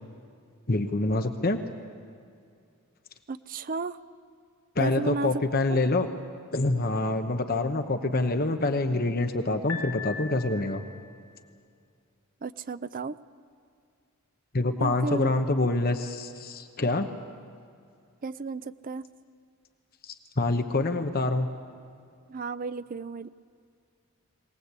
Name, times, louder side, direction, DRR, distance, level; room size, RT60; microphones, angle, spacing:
voice 1, 0.7-1.6 4.8-6.1 6.5-10.8 14.5-17.1 20.0-21.5, left 2 dB, 40° left, 7 dB, 1.0 m, -26 dB
voice 2, 3.3-4.0 4.8-5.3 5.7-5.8 12.4-13.2 14.8-15.3 15.6-15.7 18.2-19.1 22.3-23.3, right 4 dB, 40° right, 14 dB, 0.5 m, -34 dB
Piano, 9.7-11.0, left 5 dB, 85° left, 2.4 m, -38 dB
22.0 x 19.0 x 8.2 m, 2.3 s
head